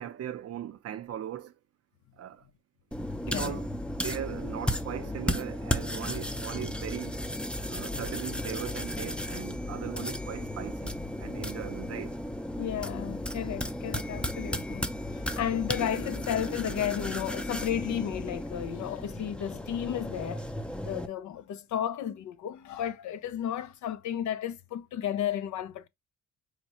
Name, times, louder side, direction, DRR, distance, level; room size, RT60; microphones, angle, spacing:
voice 1, 0.0-1.5 2.2-2.5 3.2-3.7 4.0-7.2 7.7-12.2, right 10 dB, 55° right, 0.6 m, -39 dB
sound 1, 2.9-21.1, left 1 dB, 5° left, 0.5 m, -34 dB
voice 2, 3.3-3.6 12.6-20.5 20.8-25.9, left 10 dB, 70° left, 0.7 m, -33 dB
4.9 x 2.1 x 2.9 m
cardioid pair, 90°, 30 cm